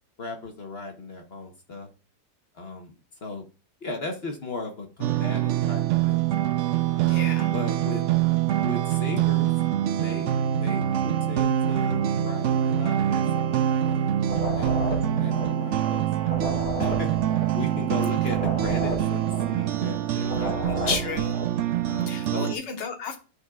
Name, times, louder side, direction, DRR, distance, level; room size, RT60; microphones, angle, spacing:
voice 1, 0.2-1.9 2.5-2.9 3.2-3.4 3.8-6.3 6.9-7.2 7.5-8.0 8.6-9.5 10.0-14.1 14.5-14.9 15.2-16.5 16.8-17.2 17.5-21.1 21.8-22.5, left 3 dB, 40° left, 3 dB, 1.1 m, -37 dB
sound 1, 5.0-22.6, right 11 dB, 80° right, 0.6 m, -25 dB
voice 2, 7.1-7.5 20.7-21.4 22.1-23.2, left 5 dB, 85° left, 4 dB, 1.9 m, -32 dB
sound 2, 14.2-21.6, equal, 25° right, 2.8 m, -33 dB
11.0 x 5.2 x 2.4 m, 0.34 s
omnidirectional pair, 1.9 m